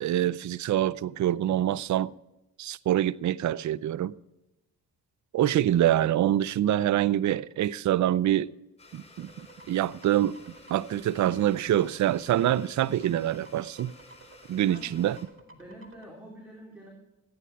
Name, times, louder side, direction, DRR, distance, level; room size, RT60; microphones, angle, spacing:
voice 1, 0.0-2.1 2.6-4.1 5.3-8.5 8.9-9.3 9.7-10.4 10.7-13.9 14.5-15.2, right 12 dB, 50° right, 0.5 m, -25 dB
Domestic sounds home sounds, 8.8-15.2, left 2 dB, 15° left, 4.4 m, -54 dB
sound 1, 9.2-16.0, right 2 dB, 35° right, 2.1 m, -53 dB
voice 2, 14.6-15.1 15.4-16.9, equal, 5° right, 4.0 m, -47 dB
14.0 x 10.0 x 4.6 m
supercardioid pair, 50°, 36 cm